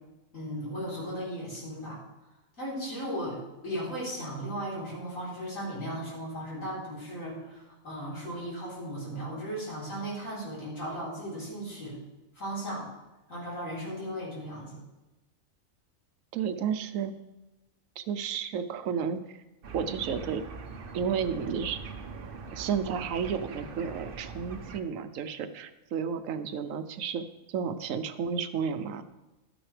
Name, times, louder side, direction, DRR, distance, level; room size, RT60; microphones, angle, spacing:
voice 1, 0.3-2.0 2.6-12.0 12.3-12.9 13.3-14.8, equal, 75° left, -6 dB, 4.2 m, -36 dB
voice 2, 16.3-17.1 18.0-19.2 19.7-20.4 20.9-21.8 22.5-29.0, right 7 dB, 75° right, 10 dB, 1.0 m, -32 dB
sound 1, 19.6-24.8, right 4 dB, 50° right, 0.8 m, -42 dB
13.0 x 9.0 x 3.3 m, 1.0 s
omnidirectional pair, 1.4 m